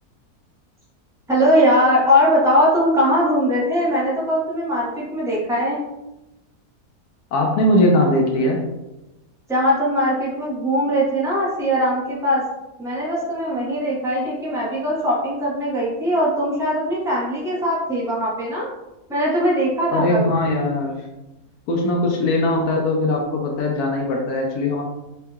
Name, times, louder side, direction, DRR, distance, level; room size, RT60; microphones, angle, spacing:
voice 1, 1.3-5.8 9.5-12.4 12.8-18.7 19.1-20.3, equal, 5° right, -7 dB, 0.8 m, -20 dB
voice 2, 7.3-8.6 19.9-21.0 21.7-24.8, left 1 dB, 80° left, 1 dB, 1.1 m, -20 dB
4.3 x 2.8 x 2.3 m, 0.97 s
omnidirectional pair, 1.6 m